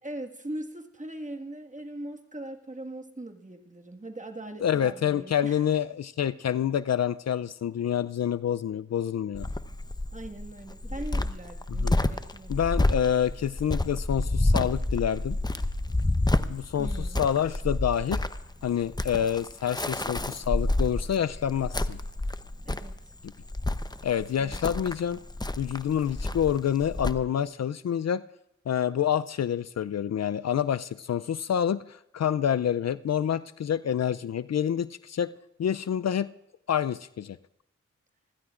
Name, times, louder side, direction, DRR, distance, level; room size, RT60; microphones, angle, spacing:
voice 1, 0.0-5.6 10.1-12.6 16.8-17.2 22.6-23.1 24.4-24.6, right 1 dB, 25° right, 3 dB, 1.8 m, -40 dB
voice 2, 4.6-9.5 11.7-12.0 12.5-15.4 16.5-16.9 17.2-18.2 18.6-22.0 24.0-25.2 25.6-28.2 28.7-35.3 35.6-36.3 36.7-37.4, left 9 dB, 60° left, 15 dB, 0.4 m, -27 dB
Cricket, 9.3-27.1, left 2 dB, 15° left, 0.8 m, -29 dB
25.5 x 15.5 x 2.5 m, 0.86 s
cardioid pair, 40°, 30 cm